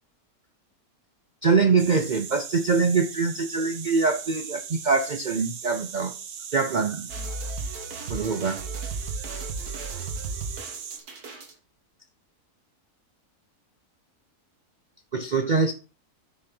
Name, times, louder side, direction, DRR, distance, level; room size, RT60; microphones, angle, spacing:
voice 1, 1.4-6.1 6.5-7.1 8.1-8.6 15.1-15.7, right 4 dB, 45° right, 8 dB, 0.6 m, -23 dB
sound 1, 1.8-11.0, right 7 dB, 60° right, 1.3 m, -39 dB
sound 2, 7.1-11.5, right 3 dB, 85° right, 2.0 m, -35 dB
8.5 x 5.6 x 5.5 m, 0.34 s
omnidirectional pair, 1.6 m